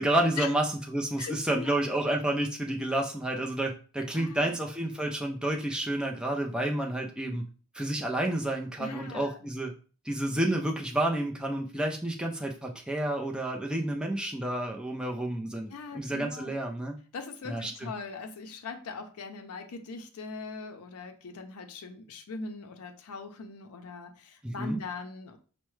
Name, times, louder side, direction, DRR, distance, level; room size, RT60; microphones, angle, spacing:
voice 1, 0.0-7.4 7.8-9.7 10.1-17.0 17.5-17.9 24.4-24.8, right 1 dB, 5° right, 0 dB, 0.4 m, -30 dB
voice 2, 1.2-1.8 4.1-4.5 8.8-9.4 10.3-10.4 15.7-16.5 17.1-25.4, left 4 dB, 85° left, 5 dB, 0.5 m, -40 dB
4.5 x 2.1 x 3.1 m, 0.38 s
head